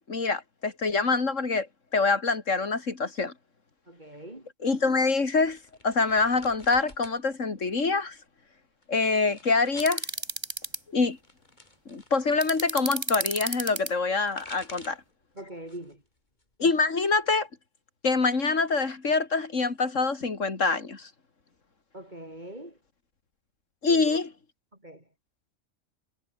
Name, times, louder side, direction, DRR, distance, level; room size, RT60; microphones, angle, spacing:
voice 1, 0.1-1.7 1.9-3.3 4.6-8.2 8.9-10.1 10.9-11.2 11.9-15.0 16.6-17.5 18.0-21.1 23.8-24.3, left 4 dB, 80° left, 3.0 m, -25 dB
voice 2, 3.9-4.5 15.3-16.0 21.9-22.8 23.9-24.2 24.8-25.1, right 1 dB, 35° right, 5.9 m, -42 dB
sound 1, 5.4-7.2 7.5-8.2 8.8-10.0 11.0-12.8 14.0-15.1 15.6-16.0 16.4-17.4, left 1 dB, 35° left, 4.9 m, -50 dB
sound 2, 9.8-10.8 12.4-13.9, right 1 dB, 20° right, 3.0 m, -31 dB
omnidirectional pair, 1.3 m